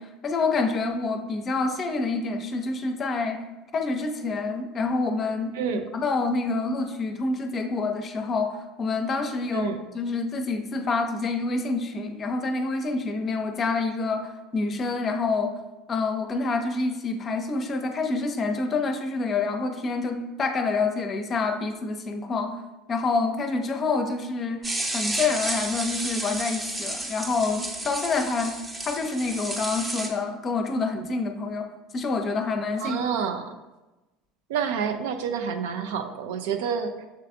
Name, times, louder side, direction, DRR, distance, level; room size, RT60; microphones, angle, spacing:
voice 1, 0.0-3.5 3.7-15.6 15.9-22.6 22.9-33.0, left 3 dB, 40° left, 6 dB, 0.6 m, -27 dB
voice 2, 5.5-5.9 9.5-9.8 32.8-33.6 34.5-37.1, right 7 dB, 75° right, 8 dB, 0.4 m, -28 dB
sound 1, 24.6-30.1, right 1 dB, 20° right, 0.7 m, -32 dB
6.7 x 3.3 x 2.4 m, 1.1 s
hypercardioid pair, 75°, 0 cm